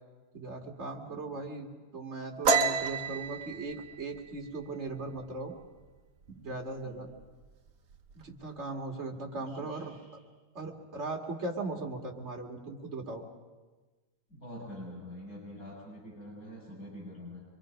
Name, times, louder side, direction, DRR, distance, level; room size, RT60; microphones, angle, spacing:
voice 1, 0.3-1.7 1.9-5.5 6.3-7.1 8.1-10.0 10.5-13.2, right 3 dB, 45° right, 1 dB, 2.5 m, -38 dB
voice 2, 1.1-1.4 6.8-7.0 9.6-9.8 14.3-17.4, left 1 dB, 65° left, -5 dB, 6.8 m, -45 dB
sound 1, 2.4-5.9 6.2-6.5 6.9-7.4 7.7-8.5, right 4 dB, 60° right, 1.5 m, -30 dB
25.5 x 23.5 x 5.2 m, 1.3 s
omnidirectional pair, 1.7 m